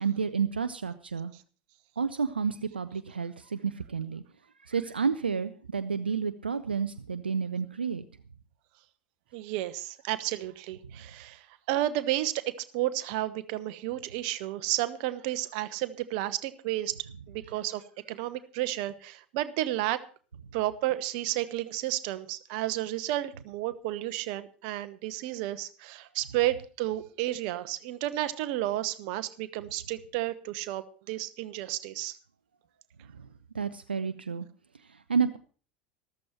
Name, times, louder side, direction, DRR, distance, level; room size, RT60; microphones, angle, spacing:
voice 1, 0.0-1.3 2.0-4.2 4.6-8.0 33.2-33.3 33.5-34.4 34.9-35.4, right 6 dB, 80° right, 12 dB, 0.6 m, -30 dB
voice 2, 9.3-11.4 11.7-12.4 12.7-17.0 17.3-17.8 18.1-20.0 20.5-32.2, right 14 dB, 50° right, 11 dB, 1.0 m, -32 dB
13.5 x 13.5 x 4.4 m, 0.39 s
figure-of-eight pair, 80°, 5 cm